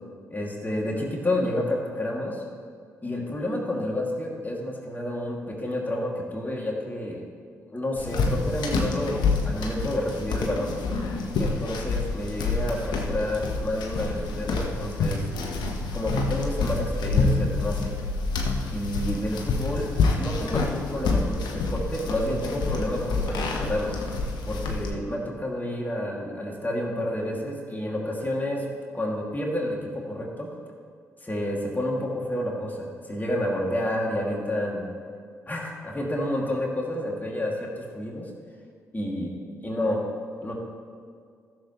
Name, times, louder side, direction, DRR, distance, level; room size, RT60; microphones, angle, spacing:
voice 1, 0.3-2.4 3.0-7.2 7.7-10.8 11.4-15.3 15.9-17.9 18.7-19.9 20.2-24.0 24.4-28.7 28.9-30.5 31.2-34.9 35.5-38.3 38.9-40.1 40.4-40.5, left 1 dB, 25° left, -2 dB, 2.5 m, -30 dB
sound 1, 8.0-24.9, left 3 dB, 65° left, 1.2 m, -27 dB
15.0 x 7.2 x 3.2 m, 2.2 s
hypercardioid pair, 45°, 8 cm